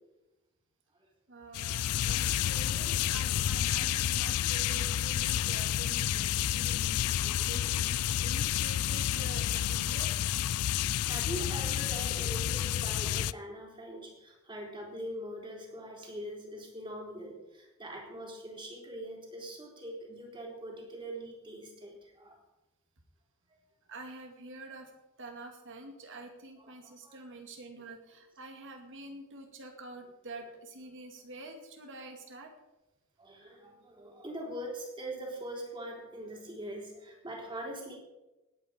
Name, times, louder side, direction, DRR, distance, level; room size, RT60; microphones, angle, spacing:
voice 1, 1.3-10.2 11.4-11.5 23.9-24.9 25.2-32.5, right 2 dB, 60° right, 4 dB, 2.3 m, -47 dB
sound 1, 1.5-13.3, left 11 dB, 90° left, 0.4 m, -30 dB
voice 2, 11.0-22.4 26.6-27.2 33.2-38.0, right 1 dB, 25° right, 0 dB, 3.7 m, -42 dB
18.5 x 8.8 x 5.1 m, 1.0 s
head